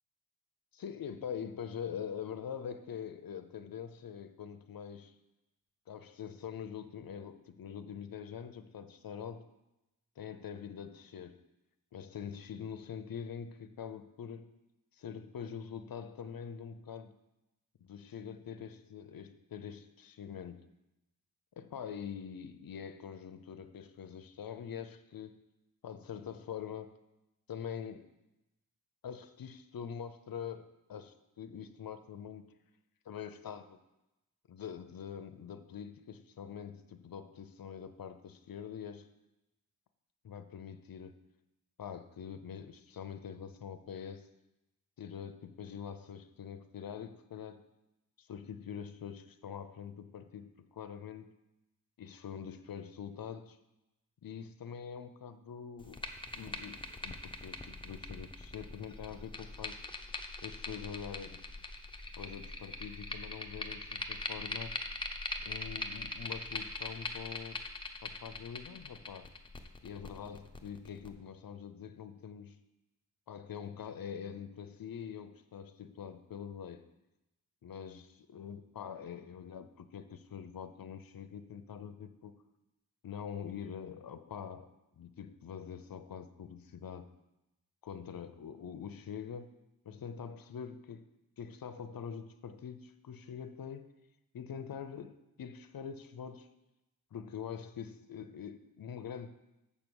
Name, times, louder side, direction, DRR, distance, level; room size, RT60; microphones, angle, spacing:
voice 1, 0.7-5.1 5.9-9.5 10.2-11.4 11.9-14.5 14.9-17.2 17.8-20.6 21.6-25.4 25.8-27.0 27.5-28.1 29.0-32.4 33.1-33.8 34.5-39.1 40.2-41.1 41.8-44.3 45.0-47.7 48.2-51.3 52.0-53.6 54.2-56.0 56.3-59.8 60.4-61.4 62.2-64.7 65.4-67.6 68.0-69.3 69.8-72.6 73.3-76.9 77.6-82.4 83.0-87.1 87.8-89.5 89.8-91.1 91.4-93.9 94.3-96.5 97.1-99.3, left 7 dB, 60° left, 9 dB, 0.7 m, -44 dB
sound 1, 55.8-71.1, left 2 dB, 15° left, 0.8 m, -42 dB
7.1 x 6.0 x 7.0 m, 0.94 s
wide cardioid pair, 105°, 38 cm